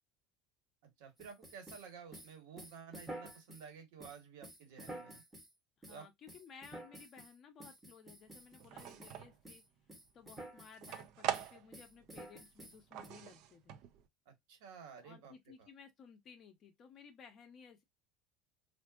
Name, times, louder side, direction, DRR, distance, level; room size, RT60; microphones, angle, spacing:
voice 1, 0.8-5.2 5.9-6.1 14.2-15.7, right 6 dB, 80° right, 1.3 m, -53 dB
sound 1, 1.2-3.7 4.0-5.5 5.8-6.0 6.3-7.3 7.6-9.2 9.4-9.6 9.9-11.0 11.3-13.1, right 1 dB, 10° right, 0.8 m, -51 dB
voice 2, 5.8-9.6 10.1-13.8 15.0-17.8, left 6 dB, 30° left, 0.6 m, -57 dB
sound 2, 8.4-9.4 9.9-12.1 12.3-14.1, right 10 dB, 50° right, 0.4 m, -42 dB
3.5 x 2.5 x 2.3 m
cardioid pair, 170°, 0 cm